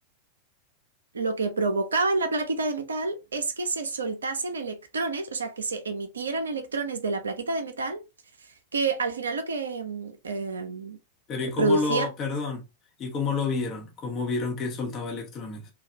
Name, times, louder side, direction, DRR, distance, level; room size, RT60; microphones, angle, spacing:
voice 1, 1.1-8.0 8.4-11.0 11.6-12.1, right 3 dB, 70° right, 0.5 m, -28 dB
voice 2, 11.3-12.6 13.0-15.7, left 4 dB, 30° left, 0.8 m, -29 dB
3.2 x 2.2 x 2.7 m
figure-of-eight pair, 90°, 0 cm